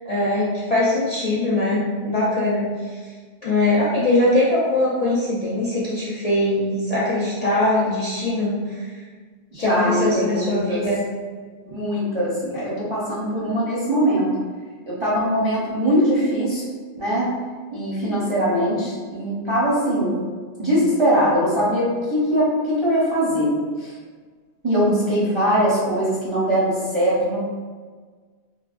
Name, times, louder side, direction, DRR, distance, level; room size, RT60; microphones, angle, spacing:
voice 1, 0.1-3.1 3.4-8.6 8.8-8.9 9.6-11.0, left 2 dB, 50° left, -8 dB, 0.4 m, -21 dB
voice 2, 9.5-10.8 11.7-14.3 14.9-16.6 16.9-17.3 17.7-20.2 20.6-23.9 24.6-27.4, equal, 35° right, -9 dB, 0.5 m, -21 dB
3.0 x 2.1 x 2.4 m, 1.5 s
omnidirectional pair, 1.2 m